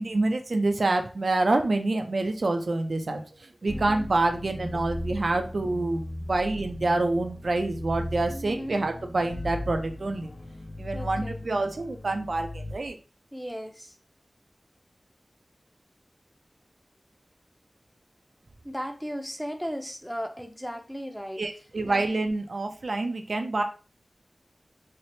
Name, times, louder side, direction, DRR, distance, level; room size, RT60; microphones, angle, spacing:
voice 1, 0.0-3.2 3.6-6.0 6.3-10.3 10.8-13.0 21.4-23.6, right 2 dB, 80° right, 5 dB, 0.5 m, -27 dB
sound 1, 3.7-12.8, left 1 dB, 60° left, 0.4 m, -37 dB
voice 2, 3.7-4.1 8.3-8.8 10.9-11.4 13.3-14.0 18.6-21.4 21.8-22.0, equal, ahead, 5 dB, 0.7 m, -36 dB
3.2 x 2.1 x 4.1 m, 0.35 s
wide cardioid pair, 45°, 0 cm